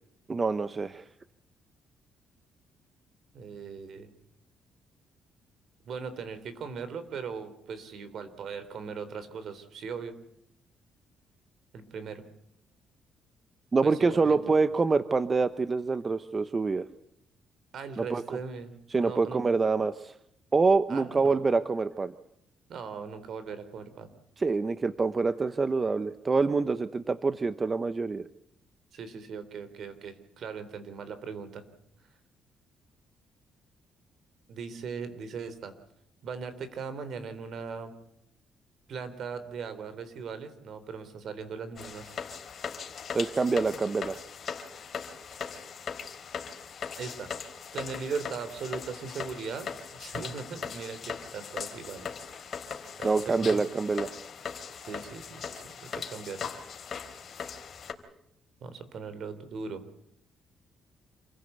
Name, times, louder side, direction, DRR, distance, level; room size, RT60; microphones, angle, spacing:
voice 1, 0.3-1.0 13.7-16.8 18.0-18.2 18.9-20.1 20.5-22.1 24.4-28.3 43.1-44.2 53.0-54.1, right 4 dB, 30° right, 12 dB, 1.0 m, -26 dB
voice 2, 3.3-4.1 5.8-10.1 11.7-12.2 13.8-14.4 17.7-18.8 19.0-19.4 20.9-21.5 22.7-24.1 28.9-31.6 34.5-35.7 36.2-37.9 38.9-42.1 47.0-47.3 47.7-52.2 53.0-53.6 54.8-56.5 58.6-59.8, right 5 dB, 65° right, 12 dB, 3.8 m, -39 dB
sound 1, 41.8-57.9, left 6 dB, 50° left, 3.9 m, -39 dB
27.5 x 16.0 x 8.2 m, 0.78 s
cardioid pair, 90°, 0 cm